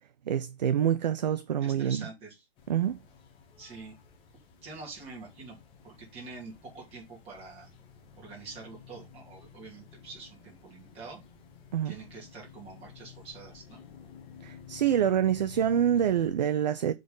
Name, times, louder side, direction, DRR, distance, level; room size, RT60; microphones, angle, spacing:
voice 1, 0.3-2.0 2.7-3.0 11.7-11.9 14.4-16.9, right 9 dB, 45° right, 0.5 m, -26 dB
voice 2, 1.6-2.4 3.6-3.9 4.6-5.6 5.8-7.7 8.2-11.2 11.8-13.8, right 4 dB, 20° right, 3.0 m, -46 dB
sound 1, 2.6-16.4, left 6 dB, 15° left, 1.2 m, -52 dB
7.6 x 4.0 x 5.3 m
figure-of-eight pair, 130°, 31 cm